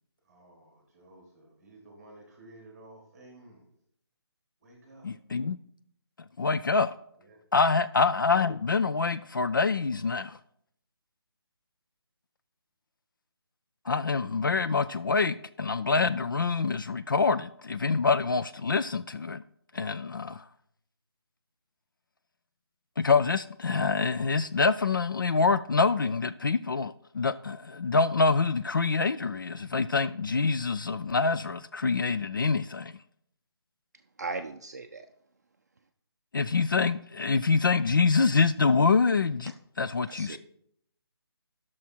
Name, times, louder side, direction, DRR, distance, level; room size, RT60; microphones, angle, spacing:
voice 1, 0.2-3.7 4.6-5.1 7.2-7.4, right 1 dB, 5° right, 2.2 m, -53 dB
voice 2, 5.0-5.6 6.4-6.9 7.5-10.4 13.9-19.4 19.7-20.4 23.0-32.9 36.3-40.4, left 4 dB, 50° left, 0.4 m, -26 dB
voice 3, 34.2-35.1 40.1-40.4, right 3 dB, 40° right, 0.5 m, -37 dB
12.5 x 6.3 x 4.4 m
hypercardioid pair, 175°, 14 cm